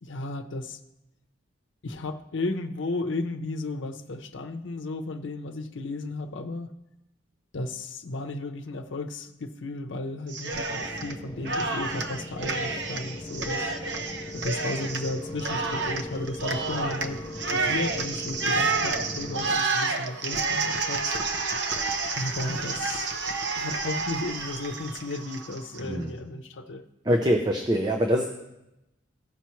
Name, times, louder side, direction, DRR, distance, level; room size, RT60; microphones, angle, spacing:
voice 1, 0.0-0.8 1.8-6.7 7.5-13.7 14.3-17.2 17.5-21.2 22.2-23.1 23.6-26.9, left 2 dB, 85° left, 7 dB, 0.7 m, -34 dB
Cheering, 10.3-11.1 11.4-25.8, right 3 dB, 70° right, 0.7 m, -30 dB
sound 1, 10.7-19.6, left 1 dB, 20° left, 0.5 m, -39 dB
voice 2, 25.8-26.1 27.0-28.3, equal, 20° right, 3 dB, 0.6 m, -24 dB
16.0 x 5.7 x 3.1 m, 0.90 s
head